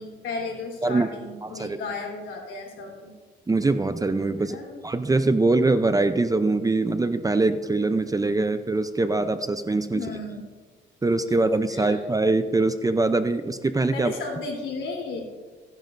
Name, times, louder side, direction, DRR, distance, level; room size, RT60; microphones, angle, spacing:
voice 1, 0.0-3.1 4.4-4.8 9.9-10.4 11.3-12.0 13.9-15.2, left 3 dB, 70° left, 0 dB, 3.7 m, -34 dB
voice 2, 1.4-1.8 3.5-10.0 11.0-14.1, right 2 dB, 20° right, 10 dB, 0.5 m, -23 dB
16.0 x 10.5 x 2.6 m, 1.4 s
cardioid pair, 90°, 20 cm